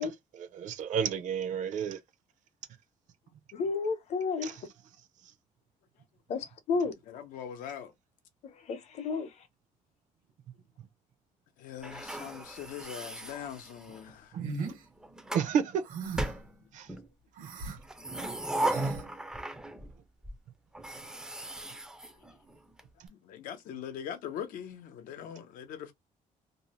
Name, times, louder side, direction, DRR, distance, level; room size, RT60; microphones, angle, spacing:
voice 1, 0.0-2.0 4.4-4.6 5.2-5.3 14.3-14.7 15.3-15.8 16.7-16.9 17.4-17.8, right 7 dB, 65° right, 0.6 m, -32 dB
voice 2, 3.5-4.5 6.3-6.9 8.7-9.3, left 4 dB, 50° left, 0.6 m, -31 dB
voice 3, 7.1-7.9 11.6-14.4 23.1-25.9, left 9 dB, 90° left, 0.6 m, -42 dB
sound 1, 11.8-14.1 14.8-15.5 16.1-17.1 17.8-19.9 20.2-20.3 20.7-22.8, right 1 dB, 5° right, 0.4 m, -37 dB
sound 2, 14.4-14.8 15.9-16.4 17.4-17.8 18.7-19.0, right 3 dB, 80° right, 1.2 m, -36 dB
2.6 x 2.0 x 2.9 m
cardioid pair, 155°, 14 cm